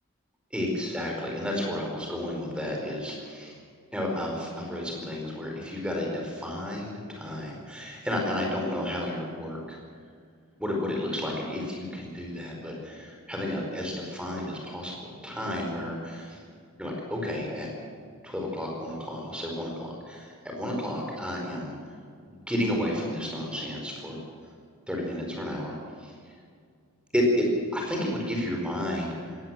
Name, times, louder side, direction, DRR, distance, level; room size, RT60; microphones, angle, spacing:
voice 1, 0.5-3.6 3.9-9.8 10.6-16.4 16.8-17.7 18.2-21.7 22.3-24.2 24.9-26.1 27.1-27.5 27.7-29.4, left 1 dB, 5° right, 0 dB, 4.7 m, -31 dB
19.5 x 18.0 x 7.6 m, 2.2 s
head